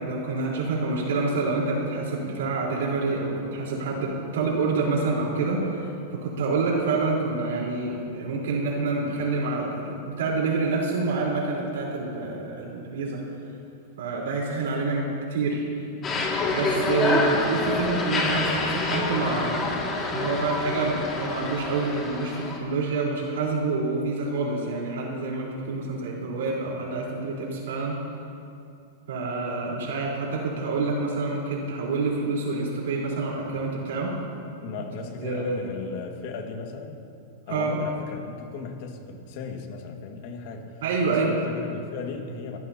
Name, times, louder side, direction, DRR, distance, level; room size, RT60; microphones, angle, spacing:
voice 1, 0.0-13.2 14.0-15.8 16.5-19.7 20.1-28.0 29.1-34.1 35.2-35.6 37.5-37.7 40.8-41.3, right 3 dB, 80° right, -4 dB, 4.1 m, -27 dB
sound 1, 16.0-22.6, left 3 dB, 25° left, 2.3 m, -27 dB
voice 2, 34.6-37.0 37.5-40.8 41.1-42.6, left 5 dB, 55° left, 3 dB, 1.9 m, -36 dB
26.5 x 14.5 x 2.9 m, 2.6 s
supercardioid pair, 150°, 0 cm